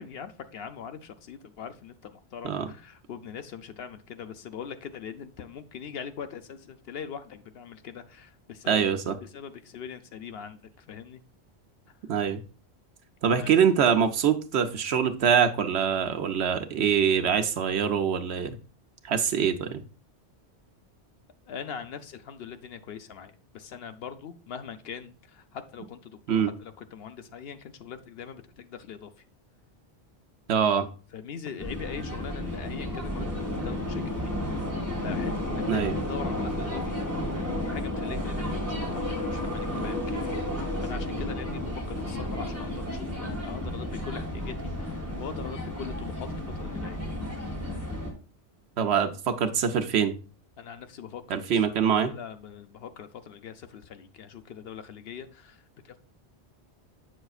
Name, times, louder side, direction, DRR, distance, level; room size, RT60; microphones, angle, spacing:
voice 1, 0.0-11.2 13.3-13.6 21.5-29.1 31.1-34.3 34.7-37.0 37.2-40.4 40.8-46.3 46.6-47.0 50.6-56.0, left 7 dB, 70° left, 9 dB, 0.8 m, -42 dB
voice 2, 8.7-9.2 12.1-12.4 13.2-18.6 19.0-19.8 26.3-26.5 30.5-30.9 35.7-35.9 48.8-50.1 51.3-52.1, right 7 dB, 75° right, 7 dB, 1.0 m, -24 dB
sound 1, 31.6-48.1, left 1 dB, 15° right, 1.9 m, -32 dB
7.8 x 6.3 x 2.4 m, 0.36 s
omnidirectional pair, 1.1 m